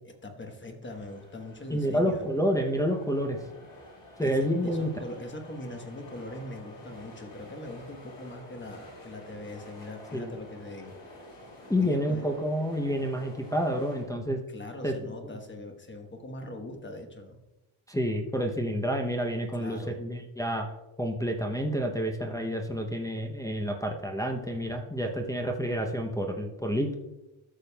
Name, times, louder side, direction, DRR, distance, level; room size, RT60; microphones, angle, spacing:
voice 1, 0.0-2.3 4.2-10.9 11.8-12.3 14.5-17.4 19.6-20.0, left 1 dB, 25° left, 4 dB, 1.1 m, -41 dB
sound 1, 0.8-14.0, left 1 dB, 55° left, 2.9 m, -49 dB
voice 2, 1.7-3.4 4.2-4.9 10.1-10.4 11.7-14.4 14.8-14.9 17.9-20.7 21.0-26.9, equal, 5° left, 1 dB, 0.6 m, -29 dB
13.0 x 6.8 x 2.3 m, 1.0 s
wide cardioid pair, 135°, 49 cm